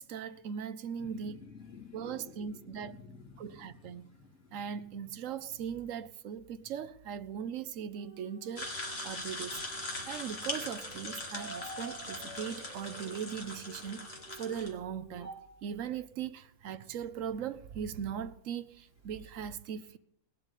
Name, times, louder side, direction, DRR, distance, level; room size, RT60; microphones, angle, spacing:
voice 1, 0.0-1.4 1.9-3.0 3.4-4.1 4.5-8.7 9.0-9.6 10.1-14.1 14.4-15.3 15.6-20.0, right 8 dB, 70° right, 1.0 m, -39 dB
voice 2, 1.0-3.7 4.2-4.7, left 6 dB, 75° left, 3.1 m, -51 dB
sound 1, 7.9-15.4, right 2 dB, 30° right, 4.3 m, -50 dB
sound 2, 8.6-14.7, left 2 dB, 45° left, 2.5 m, -41 dB
19.0 x 7.2 x 8.3 m
omnidirectional pair, 1.5 m